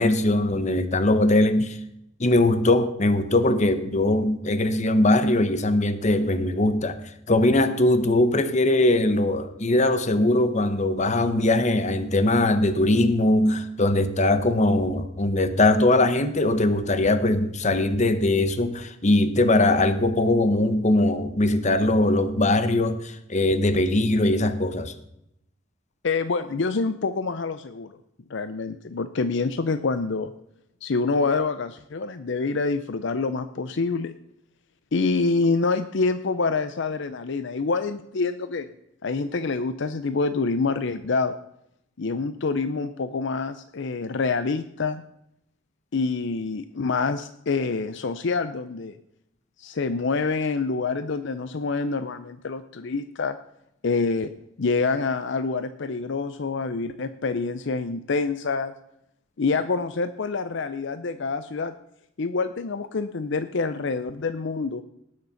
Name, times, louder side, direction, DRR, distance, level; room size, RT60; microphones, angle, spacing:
voice 1, 0.0-1.8 2.2-7.0 7.3-24.9, left 2 dB, 35° left, 11 dB, 1.0 m, -21 dB
voice 2, 26.0-27.9 28.3-30.3 30.8-34.1 34.9-38.7 39.0-41.3 42.0-45.0 45.9-48.9 49.6-53.4 53.8-54.3 54.6-58.7 59.4-61.7 62.2-64.8, left 4 dB, 60° left, 11 dB, 0.6 m, -26 dB
19.0 x 6.6 x 5.7 m, 0.79 s
head